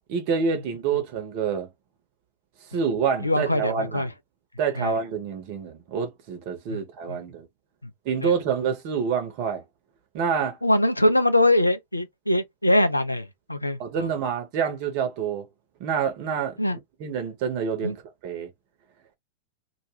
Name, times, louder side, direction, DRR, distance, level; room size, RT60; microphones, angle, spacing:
voice 1, 0.1-1.7 2.7-4.1 4.6-7.5 8.0-9.6 10.1-10.6 13.8-15.5 15.8-16.6 17.0-18.0 18.2-18.5, right 6 dB, 45° right, 0.8 m, -27 dB
voice 2, 3.2-4.1 4.8-4.9 6.7-6.8 7.1-7.2 7.8-7.9 8.2-8.3 10.6-14.1 16.6-16.8 17.8-18.0, left 1 dB, 85° left, 0.4 m, -23 dB
2.3 x 2.2 x 2.9 m
figure-of-eight pair, 90°, 0 cm